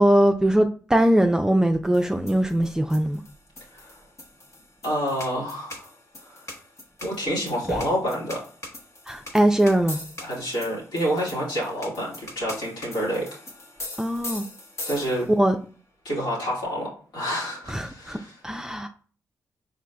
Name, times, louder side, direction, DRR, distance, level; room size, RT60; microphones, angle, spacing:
voice 1, 0.0-3.2 7.7-7.8 9.1-10.0 14.0-14.4 15.4-15.6 17.7-18.2 18.4-18.9, right 1 dB, 10° right, 0.4 m, -21 dB
sound 1, 1.9-15.5, left 2 dB, 45° left, 1.1 m, -41 dB
voice 2, 4.8-5.9 6.2-6.4 7.0-8.4 10.2-13.4 14.9-15.3 16.0-18.4, equal, 85° left, 1.9 m, -28 dB
4.7 x 3.8 x 2.2 m
supercardioid pair, 50°, 7 cm